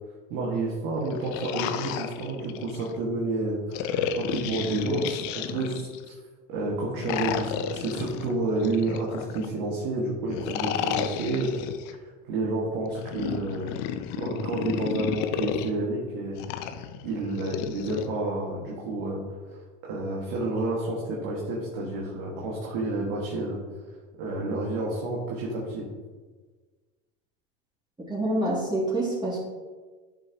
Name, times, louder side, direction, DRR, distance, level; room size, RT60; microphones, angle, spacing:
voice 1, 0.3-3.8 4.1-6.1 6.5-11.5 11.9-13.8 14.2-16.4 17.0-19.2 19.5-19.6 19.8-23.6 24.2-25.8, right 2 dB, 75° right, -5 dB, 2.2 m, -30 dB
sound 1, 1.0-2.9 3.7-6.1 7.0-9.5 10.3-11.9 12.9-15.7 16.4-18.1, left 8 dB, 65° left, 0.8 m, -32 dB
voice 2, 28.1-29.4, right 1 dB, 15° right, -7 dB, 2.8 m, -26 dB
11.0 x 6.8 x 3.1 m, 1.4 s
supercardioid pair, 100°, 32 cm